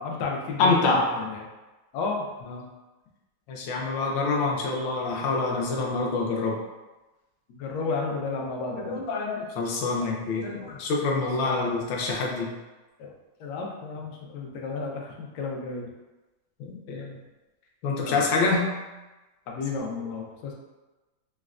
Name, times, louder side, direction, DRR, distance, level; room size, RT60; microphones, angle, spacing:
voice 1, 0.0-1.4 1.9-2.3 7.5-9.0 11.2-11.8 13.0-13.1 13.4-15.9 18.0-18.2 19.5-20.5, left 4 dB, 90° left, -1 dB, 0.8 m, -33 dB
voice 2, 0.6-1.0 2.4-2.6 3.5-6.5 8.8-12.5 16.6-17.2 17.8-18.7, left 3 dB, 75° left, -1 dB, 1.2 m, -26 dB
4.0 x 2.1 x 2.4 m, 1.1 s
omnidirectional pair, 2.3 m